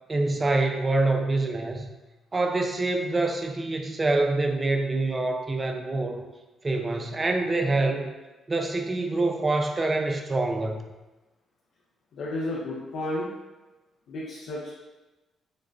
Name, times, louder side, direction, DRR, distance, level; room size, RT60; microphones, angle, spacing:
voice 1, 0.1-1.9 2.3-6.2 6.6-8.1 8.5-10.9, right 2 dB, 25° right, 4 dB, 0.5 m, -26 dB
voice 2, 12.1-13.3 14.1-14.7, left 1 dB, 70° left, -6 dB, 0.7 m, -32 dB
6.3 x 2.2 x 2.5 m, 1.1 s
cardioid pair, 90°, 0 cm